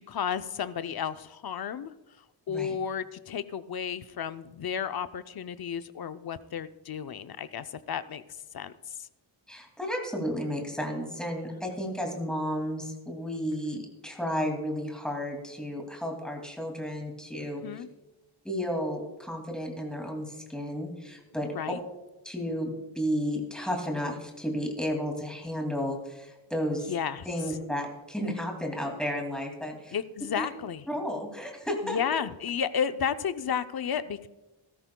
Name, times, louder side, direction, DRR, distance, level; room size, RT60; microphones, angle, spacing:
voice 1, 0.0-1.9 2.5-8.2 8.5-8.7 9.0-9.1 13.7-13.8 17.6-17.9 21.5-21.8 26.9-27.3 29.9-30.8 31.8-34.3, left 7 dB, 50° left, 12 dB, 0.6 m, -32 dB
voice 2, 9.5-17.6 18.4-21.5 22.2-26.9 27.2-30.0 30.4-30.5 30.9-32.0, equal, ahead, 1 dB, 2.4 m, -32 dB
17.0 x 13.5 x 2.2 m, 1.1 s
wide cardioid pair, 120°, 47 cm